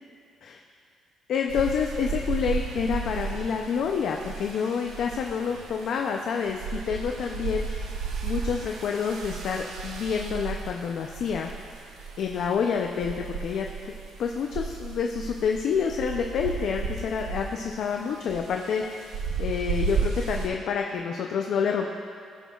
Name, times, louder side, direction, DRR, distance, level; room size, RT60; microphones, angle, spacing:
voice 1, 1.3-7.7 8.2-11.5 12.2-13.7 14.2-19.1 19.4-21.9, left 6 dB, 55° left, 2 dB, 0.4 m, -28 dB
sound 1, 1.5-20.5, right 5 dB, 85° right, 0.9 m, -34 dB
15.5 x 6.2 x 2.3 m, 2.4 s
cardioid pair, 170°, 0 cm